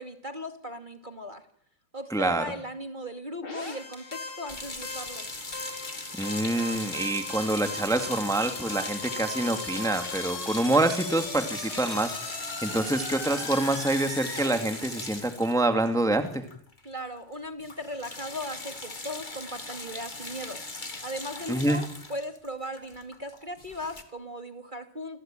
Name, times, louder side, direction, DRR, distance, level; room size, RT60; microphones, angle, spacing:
voice 1, 0.0-1.4 1.9-5.3 16.8-20.6 21.0-25.2, equal, 25° right, 6 dB, 2.3 m, -38 dB
voice 2, 2.1-2.4 6.1-12.1 12.6-16.4 21.5-21.8, right 2 dB, ahead, 7 dB, 2.1 m, -26 dB
sound 1, 3.4-14.5, left 3 dB, 75° left, 5.8 m, -38 dB
sound 2, 4.5-16.9 17.1-17.3 17.6-24.0, left 2 dB, 20° left, 2.5 m, -39 dB
28.5 x 21.5 x 9.1 m, 0.62 s
omnidirectional pair, 2.3 m